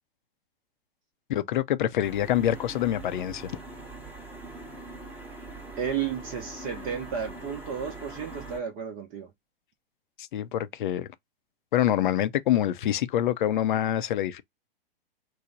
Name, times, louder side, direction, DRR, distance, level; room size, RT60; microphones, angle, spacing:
voice 1, 1.3-3.6 10.3-11.1 11.7-14.4, left 11 dB, 55° left, 0.5 m, -26 dB
sound 1, 2.0-8.6, right 2 dB, 5° right, 0.9 m, -42 dB
voice 2, 5.8-9.3, right 7 dB, 30° right, 0.7 m, -33 dB
3.1 x 2.0 x 3.8 m
figure-of-eight pair, 105°, 29 cm